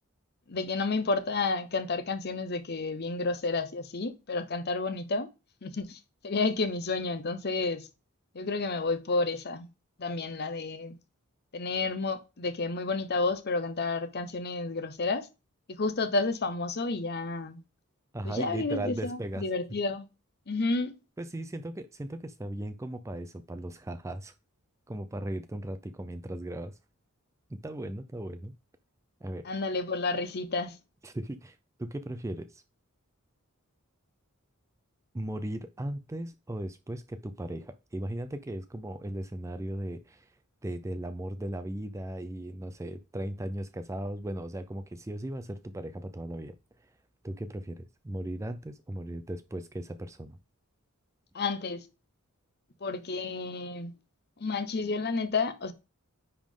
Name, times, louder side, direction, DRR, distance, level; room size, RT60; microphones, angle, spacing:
voice 1, 0.5-5.3 5.6-7.9 8.3-9.7 10.0-11.0 11.5-15.3 15.8-17.6 18.2-20.0 20.5-21.0 29.4-30.8 51.3-51.8 52.8-53.9 54.4-55.7, left 3 dB, 45° left, 0.8 m, -31 dB
voice 2, 18.1-19.5 21.2-24.3 24.9-26.7 27.5-28.5 29.2-29.5 31.0-32.6 35.1-40.3 40.6-46.5 47.2-50.4, right 1 dB, 15° right, 0.4 m, -37 dB
9.9 x 3.7 x 3.7 m
head